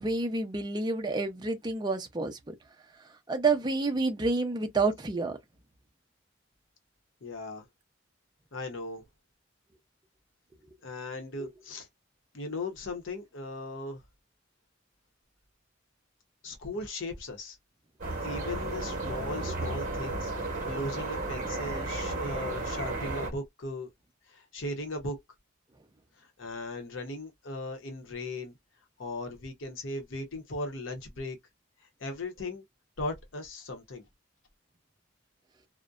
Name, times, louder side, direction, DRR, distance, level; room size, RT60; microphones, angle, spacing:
voice 1, 0.0-2.5 3.0-5.4 11.4-11.5, right 3 dB, 20° right, 0.5 m, -29 dB
voice 2, 7.2-7.7 8.5-9.1 10.8-11.9 12.3-14.0 16.4-17.6 18.2-23.9 24.3-25.2 26.2-28.6 29.0-31.4 32.0-32.6 33.0-34.0, left 2 dB, 75° left, 0.8 m, -37 dB
sound 1, 18.0-23.3, right 2 dB, 40° right, 0.9 m, -33 dB
2.5 x 2.1 x 2.3 m
head